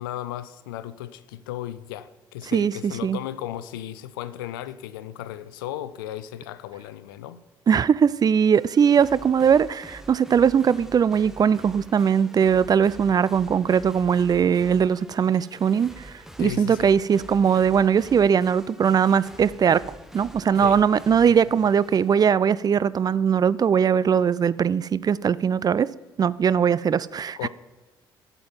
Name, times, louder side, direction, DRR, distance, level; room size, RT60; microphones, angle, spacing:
voice 1, 0.0-7.4 16.4-16.9 20.6-20.8 27.4-27.5, left 12 dB, 80° left, 0.5 m, -35 dB
voice 2, 2.5-3.2 7.7-19.8 20.1-25.9 26.2-27.4, right 7 dB, 35° right, 0.4 m, -20 dB
sound 1, 8.5-22.3, right 1 dB, 5° right, 1.0 m, -45 dB
8.6 x 6.8 x 7.2 m
hypercardioid pair, 50°, 11 cm